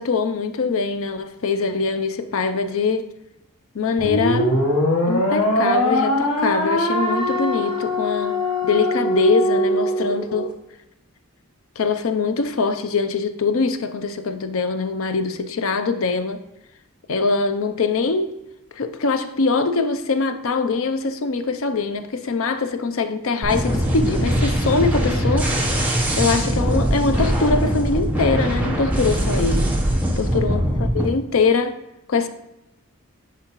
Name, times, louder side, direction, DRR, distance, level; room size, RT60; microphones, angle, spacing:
voice 1, 0.0-3.1 3.7-4.5 5.1-8.4 8.6-10.5 11.8-16.4 17.1-18.4 18.8-25.5 26.2-29.7 30.2-30.6 30.9-31.8 32.1-32.3, left 4 dB, 70° left, 0.5 m, -22 dB
sound 1, 4.0-10.5, left 1 dB, 85° left, 1.1 m, -21 dB
sound 2, 23.4-31.1, equal, 10° right, 0.9 m, -21 dB
10.0 x 4.6 x 3.0 m
head